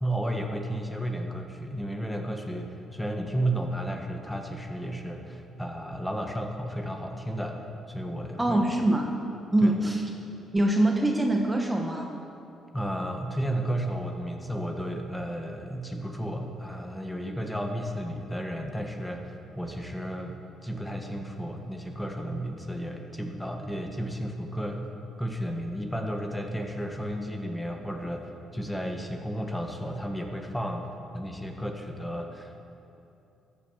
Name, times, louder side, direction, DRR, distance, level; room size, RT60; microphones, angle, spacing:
voice 1, 0.0-7.6 7.9-8.6 9.6-9.7 12.7-24.9 25.2-30.8 31.1-32.7, right 1 dB, 5° left, 3 dB, 1.3 m, -33 dB
voice 2, 8.4-9.2 9.5-10.0 10.5-12.1, right 1 dB, 10° right, 2 dB, 1.2 m, -24 dB
13.5 x 8.4 x 7.2 m, 2.8 s
cardioid pair, 90°, 0 cm